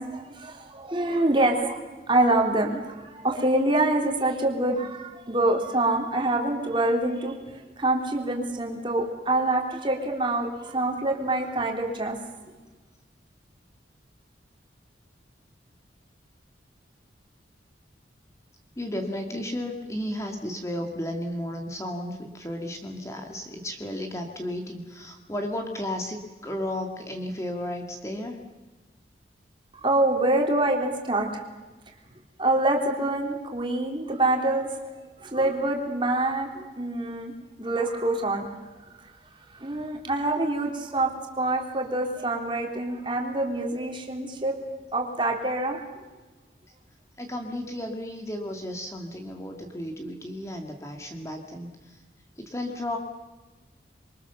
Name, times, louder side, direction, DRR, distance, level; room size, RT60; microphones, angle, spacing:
voice 1, 0.0-7.3 7.8-12.2 29.7-31.4 32.4-34.7 35.2-37.3 37.6-38.4 39.5-44.6 44.9-45.8, right 2 dB, 25° right, 1 dB, 3.4 m, -25 dB
voice 2, 18.8-28.4 47.2-52.0 52.4-53.0, left 1 dB, 15° left, 3 dB, 2.1 m, -33 dB
27.0 x 23.5 x 7.0 m, 1.2 s
head